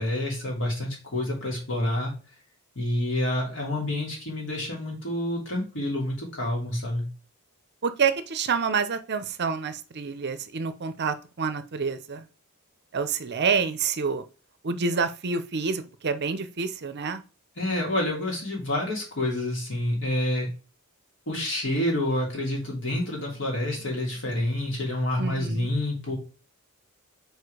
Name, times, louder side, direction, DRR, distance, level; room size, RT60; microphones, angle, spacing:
voice 1, 0.0-2.1 2.7-7.0 17.6-20.5 21.3-26.1, left 1 dB, 60° left, -2 dB, 2.9 m, -28 dB
voice 2, 7.8-12.3 12.9-14.2 14.6-17.2 25.2-25.7, right 5 dB, 50° right, 11 dB, 0.7 m, -28 dB
4.9 x 4.5 x 4.9 m, 0.34 s
head